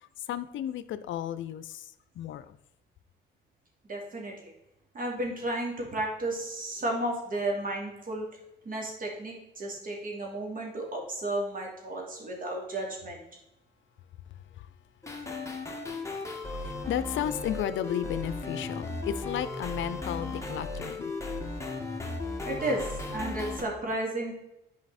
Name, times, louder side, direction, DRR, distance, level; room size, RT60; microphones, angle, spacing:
voice 1, 0.3-1.8 2.2-2.6 16.1-21.1, left 10 dB, 75° left, 13 dB, 0.6 m, -34 dB
voice 2, 3.9-4.5 4.9-8.3 8.6-13.2 22.5-22.8 23.1-24.3, right 1 dB, 45° right, 0 dB, 2.8 m, -33 dB
sound 1, 15.0-23.6, left 3 dB, 15° left, 1.6 m, -36 dB
9.6 x 5.0 x 4.2 m, 0.89 s
cardioid pair, 90°, 20 cm